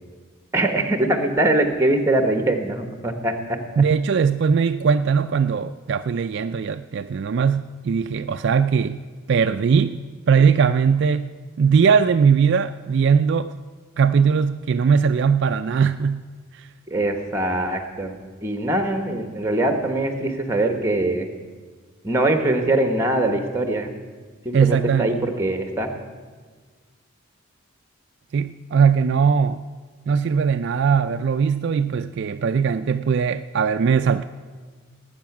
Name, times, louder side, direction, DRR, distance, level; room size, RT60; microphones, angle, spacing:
voice 1, 0.5-3.6 16.9-21.3 22.0-23.9 24.4-25.9, right 2 dB, 10° right, 6 dB, 1.1 m, -22 dB
voice 2, 3.8-9.0 9.3-11.3 11.6-13.5 14.0-16.3 16.5-16.7 24.5-25.1 28.3-29.6 30.1-34.2, right 6 dB, 55° right, 9 dB, 0.3 m, -20 dB
19.0 x 8.6 x 5.9 m, 1.5 s
head